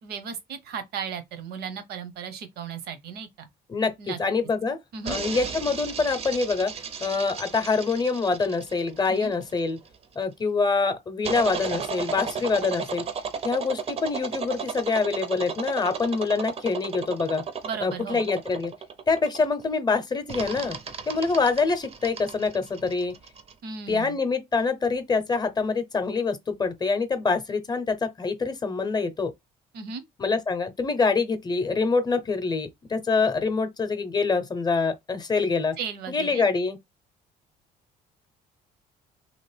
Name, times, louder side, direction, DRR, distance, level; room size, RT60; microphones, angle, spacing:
voice 1, 0.0-3.5 4.0-4.2 4.9-5.2 9.1-9.3 17.6-18.2 23.6-24.2 29.7-30.0 35.8-36.5, right 6 dB, 75° right, 0.8 m, -35 dB
voice 2, 3.7-4.8 5.1-6.7 7.0-9.8 10.2-13.0 13.4-17.4 17.8-18.7 19.1-20.8 21.1-23.1 23.9-29.3 30.2-35.8 36.1-36.8, left 4 dB, 25° left, 0.7 m, -25 dB
sound 1, 5.0-9.9 11.2-19.6 20.3-23.5, right 6 dB, 35° right, 0.5 m, -35 dB
2.9 x 2.4 x 3.2 m
cardioid pair, 110°, 17 cm